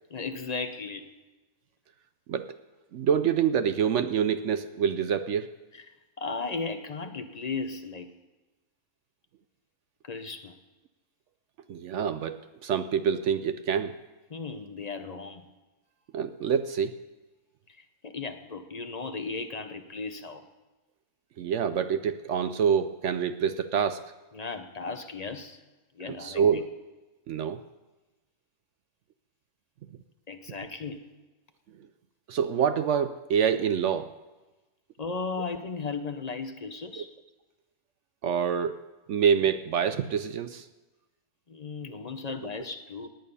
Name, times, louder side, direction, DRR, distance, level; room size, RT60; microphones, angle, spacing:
voice 1, 0.1-1.1 5.7-8.1 10.0-10.5 14.3-15.4 18.0-20.4 24.3-25.6 26.0-26.6 30.3-31.0 35.0-37.1 41.5-43.1, left 4 dB, 40° left, 7 dB, 0.6 m, -36 dB
voice 2, 2.9-5.6 11.7-14.0 16.1-17.0 21.4-24.1 26.1-26.7 27.3-27.6 32.3-34.1 37.0-37.1 38.2-40.7, right 7 dB, 65° right, 12 dB, 0.7 m, -26 dB
18.0 x 9.0 x 5.5 m, 1.1 s
omnidirectional pair, 1.6 m